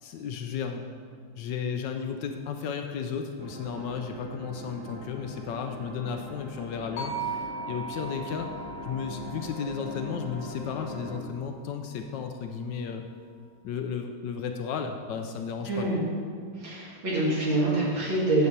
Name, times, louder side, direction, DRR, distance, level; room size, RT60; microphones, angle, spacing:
voice 1, 0.0-0.8 1.2-8.5 8.8-13.0 13.6-16.0, left 6 dB, 75° left, 5 dB, 1.1 m, -34 dB
sound 1, 3.4-11.2, left 1 dB, 40° right, 0.3 m, -41 dB
sound 2, 7.0-11.2, right 4 dB, 55° left, 1.5 m, -39 dB
voice 2, 15.7-16.0 16.5-18.5, right 2 dB, 75° right, -7 dB, 3.0 m, -26 dB
8.5 x 4.1 x 6.6 m, 2.1 s
omnidirectional pair, 2.1 m